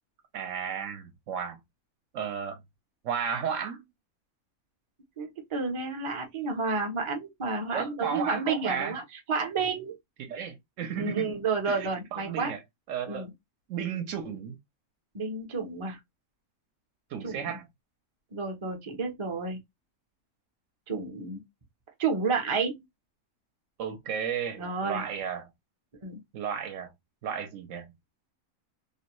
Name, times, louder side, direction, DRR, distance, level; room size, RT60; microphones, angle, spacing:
voice 1, 0.3-1.6 2.1-2.6 3.0-3.8 7.7-9.0 10.2-11.2 11.7-12.6 12.9-13.3 13.7-14.6 17.1-17.6 23.8-25.5 26.3-26.9 27.2-27.9, right 7 dB, 65° right, 0.9 m, -33 dB
voice 2, 5.2-9.0 9.3-9.9 11.0-12.5 13.1-13.3 15.1-16.0 17.2-17.6 18.3-19.6 20.9-21.4 22.0-22.8 24.6-25.0 26.0-26.2, right 4 dB, 35° right, 0.4 m, -30 dB
2.6 x 2.1 x 2.9 m
omnidirectional pair, 1.5 m